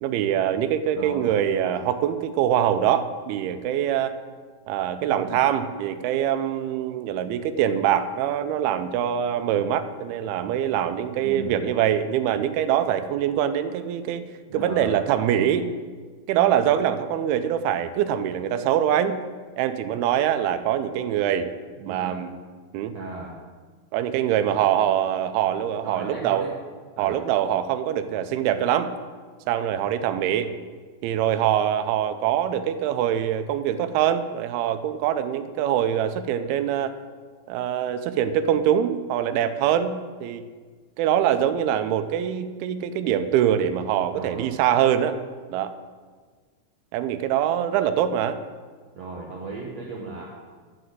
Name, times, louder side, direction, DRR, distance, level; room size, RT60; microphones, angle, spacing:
voice 1, 0.0-4.2 4.7-14.3 14.5-15.7 16.3-19.2 19.6-21.5 21.9-22.4 22.7-23.0 23.9-26.5 27.0-28.9 29.5-30.5 31.0-37.0 37.5-40.4 41.0-45.2 45.5-45.8 46.9-48.4, right 10 dB, 90° right, 10 dB, 2.5 m, -24 dB
voice 2, 0.9-1.3 5.0-5.4 11.1-11.6 14.5-15.0 21.8-22.2 22.9-23.3 25.8-26.5 27.0-27.2 44.1-44.5 48.9-50.3, right 3 dB, 70° right, -3 dB, 1.6 m, -36 dB
11.5 x 4.0 x 7.7 m, 1.5 s
omnidirectional pair, 4.4 m